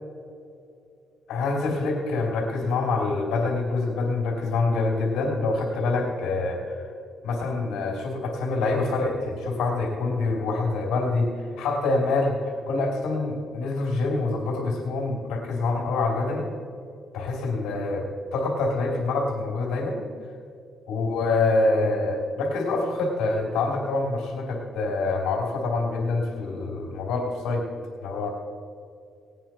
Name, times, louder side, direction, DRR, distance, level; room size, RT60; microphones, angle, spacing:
voice 1, 1.3-6.8 7.2-16.5 17.1-18.1 18.3-20.0 20.9-27.7 28.0-28.3, left 3 dB, 90° left, 0 dB, 3.1 m, -26 dB
19.0 x 9.2 x 4.5 m, 2.5 s
cardioid pair, 90°, 0 cm